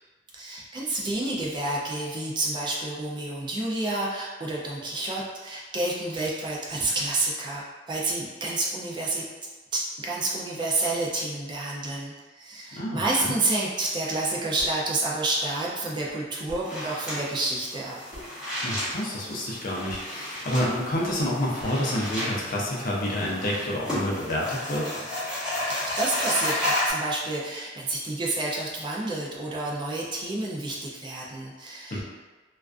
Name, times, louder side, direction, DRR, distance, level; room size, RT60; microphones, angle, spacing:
voice 1, 0.3-9.2 9.7-18.0 25.7-32.0, right 2 dB, 25° right, -4 dB, 0.3 m, -29 dB
voice 2, 12.8-13.3 18.6-24.9 31.9-32.0, left 1 dB, 50° left, -4 dB, 0.5 m, -28 dB
sound 1, 14.6-14.9 16.1-16.2 16.5-16.8 18.1-18.4 19.9-20.1 21.6-21.9, equal, 70° right, 1.0 m, -43 dB
sound 2, 16.6-26.9, left 1 dB, 5° right, 0.9 m, -32 dB
2.4 x 2.2 x 2.3 m, 1.3 s
head